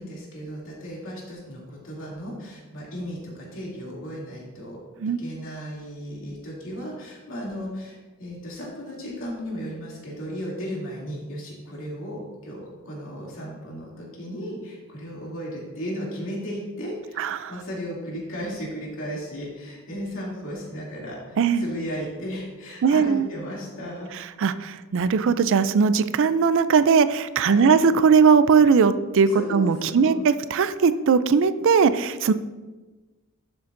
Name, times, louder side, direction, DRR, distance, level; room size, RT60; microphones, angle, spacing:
voice 1, 0.0-4.8 5.2-24.1 27.4-27.8 29.3-30.3, equal, 65° left, -4 dB, 2.6 m, -35 dB
voice 2, 17.2-17.5 21.4-21.6 22.8-23.3 24.4-32.3, right 5 dB, 60° right, 13 dB, 0.4 m, -19 dB
12.5 x 7.0 x 2.6 m, 1.2 s
head